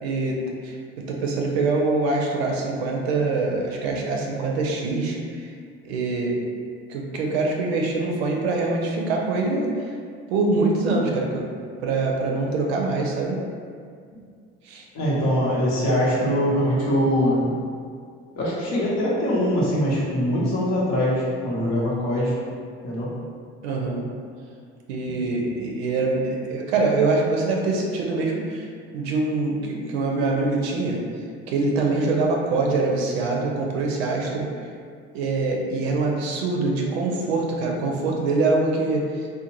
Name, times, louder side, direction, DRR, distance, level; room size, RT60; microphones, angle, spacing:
voice 1, 0.0-5.5 5.8-6.3 6.9-9.9 10.3-11.5 11.8-13.4 14.6-14.8 23.6-24.0 24.9-28.7 28.9-31.0 31.5-34.5 35.1-39.3, right 3 dB, 90° right, 0 dB, 0.5 m, -24 dB
voice 2, 14.9-17.5 18.4-22.3 22.8-23.1 25.1-25.2, equal, 60° left, -6 dB, 0.9 m, -22 dB
2.5 x 2.2 x 2.9 m, 2.1 s
hypercardioid pair, 60°, 31 cm